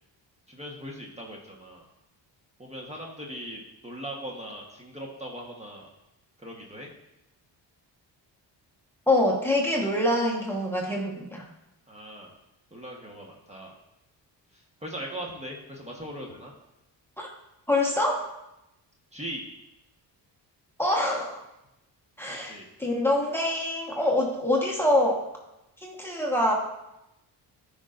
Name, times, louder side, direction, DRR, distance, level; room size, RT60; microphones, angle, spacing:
voice 1, 0.5-1.9 2.6-5.9 6.4-6.9 11.9-12.3 12.7-13.8 14.5-16.5 19.1-19.4 22.3-22.6, equal, 15° right, -1 dB, 1.3 m, -40 dB
voice 2, 9.1-11.4 17.2-17.3 17.7-18.3 20.8-21.4 22.2-22.5 22.8-25.2 25.8-26.5, left 1 dB, 5° left, -2 dB, 1.3 m, -25 dB
13.5 x 5.3 x 2.6 m, 0.90 s
cardioid pair, 105°, 42 cm